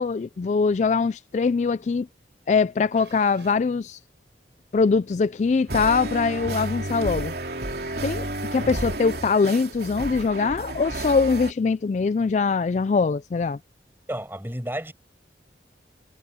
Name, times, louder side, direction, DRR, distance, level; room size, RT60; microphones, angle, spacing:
voice 1, 0.0-2.1 2.5-4.0 4.7-7.3 8.0-13.6, left 4 dB, 40° left, 0.3 m, -22 dB
sound 1, 2.9-3.7 4.5-4.6 5.5-6.5 6.8-7.1 7.3-7.4 8.3-9.4, right 4 dB, 80° right, 6.5 m, -52 dB
sound 2, 5.7-11.5, right 1 dB, 60° right, 3.2 m, -31 dB
voice 2, 14.1-14.9, right 1 dB, 10° right, 6.5 m, -31 dB
head